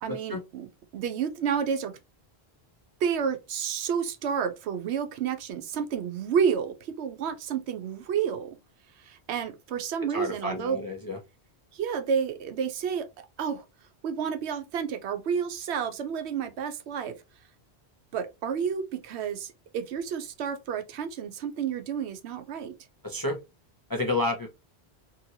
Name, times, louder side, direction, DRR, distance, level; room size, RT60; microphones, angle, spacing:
voice 1, 0.0-2.0 3.0-8.6 9.0-10.8 11.7-13.6 14.0-17.1 18.1-22.8, right 7 dB, 85° right, 0.9 m, -30 dB
voice 2, 10.1-11.2 23.0-23.4 23.9-24.5, left 2 dB, 35° left, 0.3 m, -29 dB
2.8 x 2.7 x 2.7 m
omnidirectional pair, 1.1 m